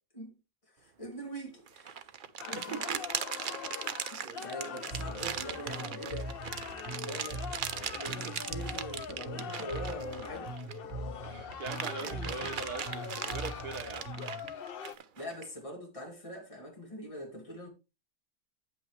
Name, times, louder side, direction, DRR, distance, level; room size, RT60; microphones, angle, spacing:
voice 1, 0.8-2.1 2.4-2.9 4.1-6.3 7.0-10.6 12.0-12.6 15.2-17.7, equal, 20° left, 2.5 m, -43 dB
sound 1, 1.7-10.9 11.3-15.5, right 7 dB, 60° right, 0.5 m, -39 dB
sound 2, 2.4-14.9, left 8 dB, 70° left, 0.5 m, -43 dB
voice 2, 2.6-3.0 4.2-4.5 6.6-6.9 7.9-8.4 11.2-14.2, right 4 dB, 75° right, 1.8 m, -42 dB
Bass guitar, 4.9-14.5, right 2 dB, 45° right, 2.8 m, -42 dB
9.4 x 8.5 x 3.1 m
omnidirectional pair, 1.7 m